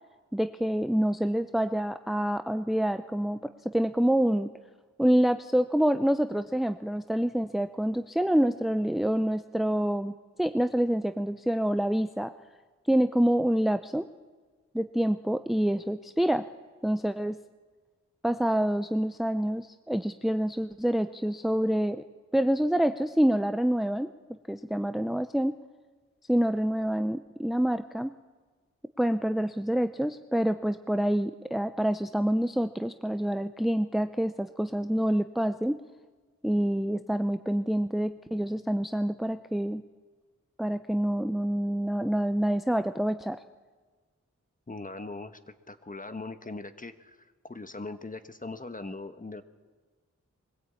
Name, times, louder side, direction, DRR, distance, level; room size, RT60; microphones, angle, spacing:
voice 1, 0.3-4.5 5.0-10.1 10.4-12.3 12.9-14.1 14.7-16.5 16.8-17.4 18.2-22.0 22.3-24.1 24.5-25.6 26.3-28.2 29.0-35.8 36.4-39.8 40.6-43.4, equal, ahead, 10 dB, 0.6 m, -27 dB
voice 2, 44.7-45.4 45.7-47.2 47.4-49.4, left 3 dB, 25° left, 9 dB, 1.2 m, -40 dB
22.0 x 15.5 x 8.4 m, 1.4 s
wide cardioid pair, 65°, 30 cm